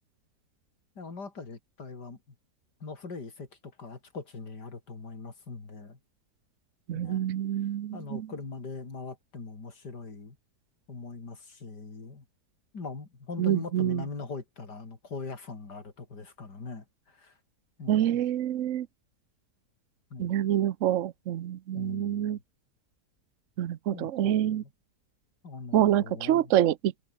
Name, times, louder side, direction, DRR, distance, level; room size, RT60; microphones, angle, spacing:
voice 1, 1.0-2.4 2.8-6.0 6.9-7.3 7.9-10.4 10.9-12.2 12.7-17.4 17.8-18.2 20.1-20.4 21.7-22.4 23.9-24.7 25.4-26.5, left 4 dB, 80° left, 4.1 m, -41 dB
voice 2, 6.9-8.3 13.4-14.0 17.9-18.9 20.2-22.4 23.6-24.6 25.7-26.9, right 11 dB, 55° right, 1.0 m, -26 dB
omnidirectional pair, 1.8 m